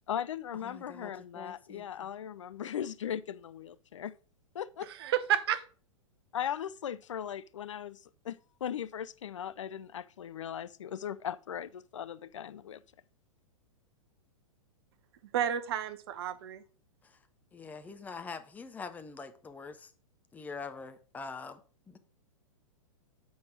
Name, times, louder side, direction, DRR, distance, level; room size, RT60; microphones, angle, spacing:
voice 1, 0.1-4.1 4.5-4.9 6.3-12.8, left 9 dB, 60° left, 0.4 m, -38 dB
voice 2, 0.6-2.1 17.0-17.2 17.5-19.9 20.3-21.6 21.9-22.0, left 4 dB, 10° left, 0.5 m, -44 dB
voice 3, 4.9-5.6 15.3-16.6, right 9 dB, 45° right, 0.7 m, -31 dB
7.8 x 5.2 x 4.7 m
figure-of-eight pair, 105°, 18 cm